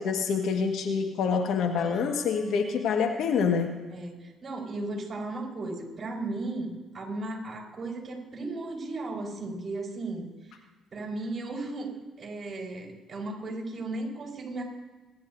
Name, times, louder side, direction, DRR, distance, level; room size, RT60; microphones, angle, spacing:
voice 1, 0.0-3.7, left 6 dB, 70° left, 4 dB, 1.7 m, -26 dB
Piano, 1.8-3.7, left 3 dB, 30° left, 3.2 m, -46 dB
voice 2, 3.9-10.3 10.9-11.9 12.2-14.6, right 2 dB, 40° right, -1 dB, 4.7 m, -35 dB
26.5 x 10.5 x 2.7 m, 1.2 s
supercardioid pair, 65°, 0 cm